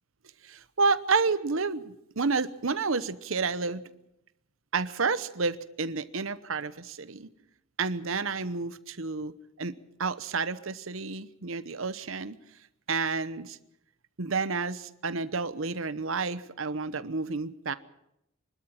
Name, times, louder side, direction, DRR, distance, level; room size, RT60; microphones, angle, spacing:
voice 1, 0.4-3.9 4.7-7.3 7.8-9.3 9.6-9.7 10.0-12.4 12.9-13.6 14.2-17.7, right 4 dB, 70° right, 14 dB, 1.0 m, -30 dB
25.0 x 13.0 x 8.9 m, 0.82 s
head